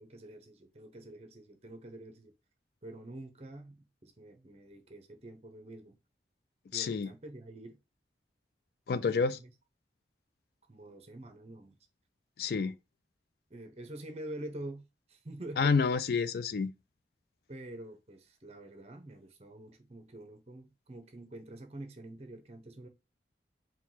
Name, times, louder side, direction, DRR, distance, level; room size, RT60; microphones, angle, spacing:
voice 1, 0.0-2.3 2.8-6.0 6.7-7.8 8.9-9.5 10.7-11.8 13.5-14.8 15.1-15.8 17.5-22.9, right 1 dB, 35° right, 0.8 m, -46 dB
voice 2, 6.7-7.1 8.9-9.4 12.4-12.7 15.6-16.7, left 5 dB, 60° left, 0.3 m, -29 dB
4.5 x 2.2 x 3.9 m
head